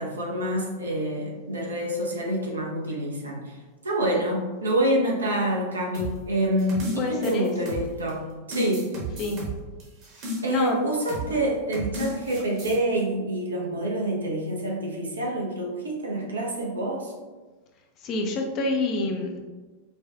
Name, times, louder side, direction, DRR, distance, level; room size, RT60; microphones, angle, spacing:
voice 1, 0.0-3.6 3.8-9.0 10.4-17.1, right 1 dB, 75° right, -2 dB, 0.7 m, -27 dB
sound 1, 5.9-8.1 8.5-10.7 11.1-11.3 11.7-12.8, right 1 dB, 40° right, 1.1 m, -34 dB
voice 2, 7.0-7.5 9.2-9.5 10.5-10.8 18.0-19.4, left 3 dB, 35° left, 3 dB, 0.5 m, -27 dB
4.7 x 2.3 x 2.4 m, 1.3 s
figure-of-eight pair, 90°, 0 cm